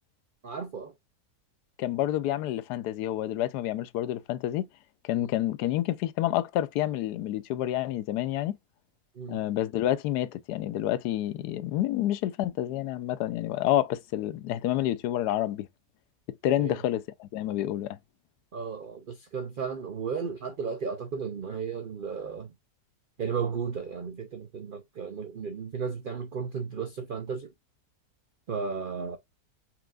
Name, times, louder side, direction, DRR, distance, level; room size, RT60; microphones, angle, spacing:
voice 1, 0.4-0.9 5.1-5.3 9.1-9.4 16.6-16.8 18.5-22.5 23.2-27.5 28.5-29.2, right 6 dB, 80° right, 0.4 m, -34 dB
voice 2, 1.8-4.7 5.0-8.6 9.3-15.7 16.4-18.0, left 13 dB, 85° left, 1.1 m, -29 dB
4.5 x 3.7 x 2.3 m
omnidirectional pair, 1.7 m